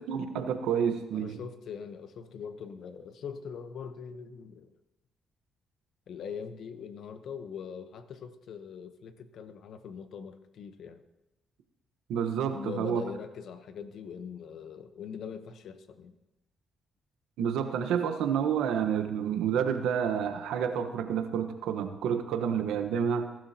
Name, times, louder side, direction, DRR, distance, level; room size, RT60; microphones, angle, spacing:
voice 1, 0.0-1.4 12.1-13.0 17.4-23.3, right 8 dB, 90° right, 7 dB, 1.2 m, -29 dB
voice 2, 1.1-4.7 6.1-11.0 12.5-16.2, left 6 dB, 70° left, 9 dB, 1.0 m, -42 dB
20.5 x 12.0 x 2.9 m, 0.98 s
cardioid pair, 90°, 0 cm